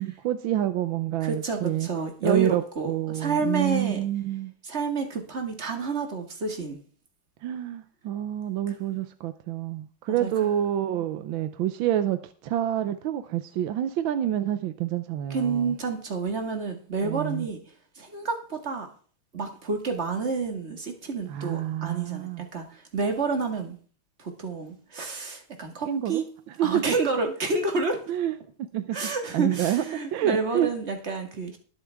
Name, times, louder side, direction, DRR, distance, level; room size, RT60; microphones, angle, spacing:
voice 1, 0.0-1.9 2.2-4.5 7.4-15.7 17.0-17.5 21.3-22.4 25.9-26.9 28.1-29.0 29.3-29.8 30.1-30.7, right 11 dB, 70° right, 10 dB, 1.5 m, -28 dB
voice 2, 1.2-4.0 4.6-6.8 10.1-10.5 15.3-17.6 18.0-18.9 19.3-23.8 24.2-26.2 26.6-28.0 28.9-31.6, right 4 dB, 30° right, 4 dB, 2.1 m, -29 dB
21.0 x 7.1 x 3.5 m, 0.42 s
omnidirectional pair, 2.3 m